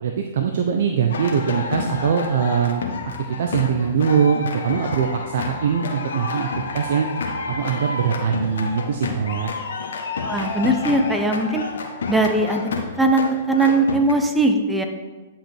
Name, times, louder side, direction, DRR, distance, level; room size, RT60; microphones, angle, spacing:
voice 1, 0.0-2.8 3.4-7.1 7.5-9.5, right 7 dB, 65° right, 4 dB, 0.7 m, -22 dB
sound 1, 1.1-14.1, left 4 dB, 75° left, 1.3 m, -30 dB
voice 2, 10.2-11.6 12.1-12.7 13.0-14.8, right 2 dB, 5° right, 4 dB, 1.0 m, -20 dB
10.0 x 5.7 x 4.5 m, 1.3 s
hypercardioid pair, 120°, 0 cm